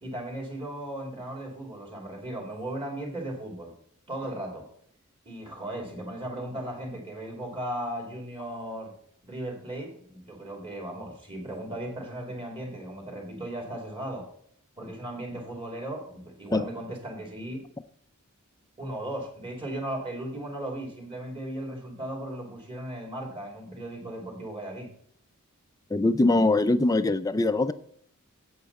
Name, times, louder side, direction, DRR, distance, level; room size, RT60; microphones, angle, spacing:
voice 1, 0.0-3.7 4.1-4.7 5.2-8.9 9.2-14.3 14.8-17.6 18.8-24.9, right 1 dB, 25° right, -1 dB, 3.0 m, -36 dB
voice 2, 25.9-27.7, left 2 dB, 15° left, 11 dB, 0.4 m, -22 dB
8.6 x 8.1 x 4.2 m, 0.62 s
head